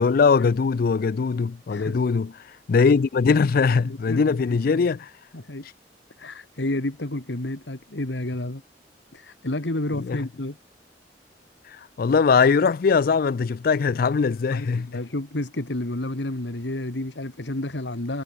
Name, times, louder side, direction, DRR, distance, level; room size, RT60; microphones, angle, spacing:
voice 1, 0.0-2.3 2.7-5.0 9.9-10.2 12.0-14.9, left 5 dB, 55° left, 0.4 m, -21 dB
voice 2, 1.7-2.0 3.8-4.8 5.3-5.7 6.2-8.6 9.1-10.6 14.5-18.2, left 1 dB, 80° left, 1.9 m, -30 dB
head